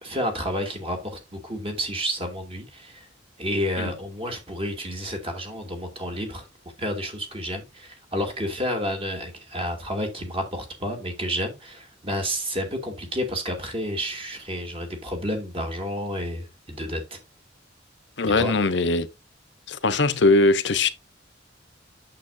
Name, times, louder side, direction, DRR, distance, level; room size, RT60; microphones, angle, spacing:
voice 1, 0.0-3.1 3.4-6.5 6.8-17.2 18.4-18.5, equal, 30° right, 2.6 m, -30 dB
voice 2, 18.2-19.1 19.7-20.9, left 2 dB, 65° left, 0.9 m, -20 dB
8.7 x 7.0 x 2.6 m
head